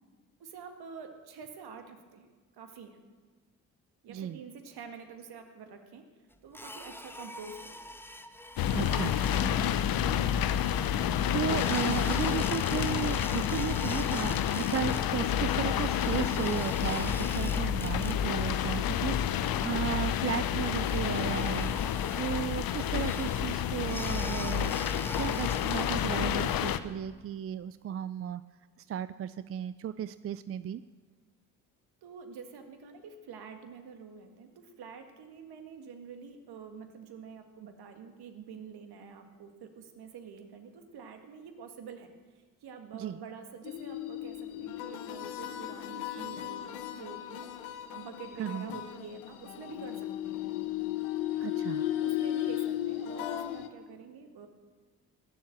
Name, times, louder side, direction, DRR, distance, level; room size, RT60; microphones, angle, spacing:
voice 1, 0.4-2.3 2.6-3.0 4.0-6.0 6.4-7.8 9.6-9.8 32.0-42.1 42.6-50.6 52.0-54.5, right 6 dB, 60° right, 6 dB, 1.9 m, -47 dB
voice 2, 4.1-4.4 8.7-9.7 11.3-21.8 22.2-24.7 25.2-28.4 28.9-30.8 42.9-43.2 48.4-48.7 51.4-51.9, right 10 dB, 35° right, 14 dB, 0.5 m, -35 dB
sound 1, 6.5-11.0 11.4-15.1 15.3-18.5 18.7-19.2 19.5-19.6 20.1-26.1, left 1 dB, 5° left, 1.0 m, -44 dB
sound 2, 8.6-26.8, left 9 dB, 55° left, 0.8 m, -29 dB
sound 3, 43.6-53.7, left 13 dB, 80° left, 0.9 m, -35 dB
20.0 x 7.3 x 7.5 m, 1.4 s
hypercardioid pair, 45°, 43 cm